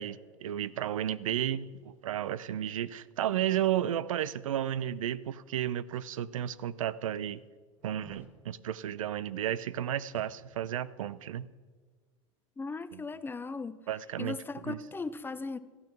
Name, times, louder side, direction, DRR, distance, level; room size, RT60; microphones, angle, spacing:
voice 1, 0.0-7.4 7.8-11.5 12.9-13.0 13.9-14.4 14.7-14.8, right 11 dB, 85° right, 0.5 m, -33 dB
sound 1, 7.8-8.3 10.1-10.8 11.1-11.2, right 1 dB, 10° right, 2.0 m, -55 dB
voice 2, 12.6-13.8 14.2-15.6, left 3 dB, 15° left, 0.6 m, -37 dB
14.0 x 9.2 x 5.9 m
hypercardioid pair, 100°, 17 cm